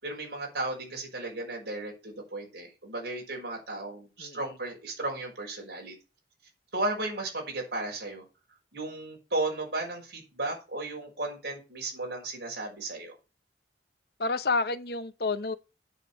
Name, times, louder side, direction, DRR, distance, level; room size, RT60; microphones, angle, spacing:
voice 1, 0.0-5.9 6.7-8.2 8.7-13.1, right 2 dB, 70° right, 5.9 m, -35 dB
voice 2, 14.2-15.5, left 3 dB, 60° left, 0.8 m, -29 dB
9.0 x 6.7 x 6.9 m
head